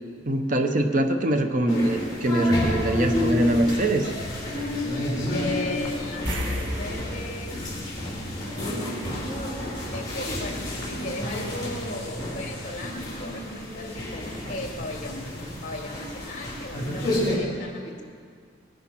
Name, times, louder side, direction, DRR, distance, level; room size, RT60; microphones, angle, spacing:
voice 1, 0.2-4.1, right 1 dB, 45° right, 6 dB, 0.9 m, -23 dB
sound 1, 1.7-17.4, left 1 dB, 20° left, 4.4 m, -30 dB
voice 2, 5.3-7.6 9.9-15.3 15.6-18.0, left 1 dB, 40° left, 1 dB, 2.3 m, -37 dB
sound 2, 6.3-9.0 9.3-9.5 12.4-12.5 12.8-12.9, equal, 70° right, 2.0 m, -33 dB
21.0 x 10.5 x 5.8 m, 2.1 s
head